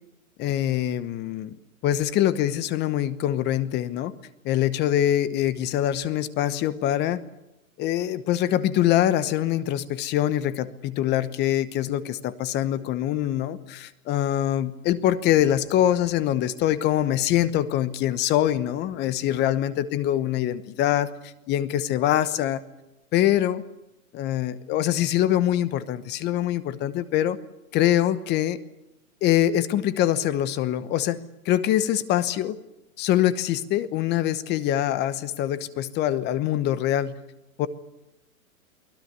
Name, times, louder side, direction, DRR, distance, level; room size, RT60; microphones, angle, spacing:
voice 1, 0.4-1.6 1.8-4.1 4.4-7.2 7.8-22.6 23.1-23.6 24.1-27.4 27.7-28.6 29.2-31.2 31.4-32.6 33.0-37.1 37.6-37.7, left 12 dB, 25° left, 15 dB, 1.0 m, -24 dB
24.0 x 17.5 x 9.6 m, 0.93 s
hypercardioid pair, 135°, 42 cm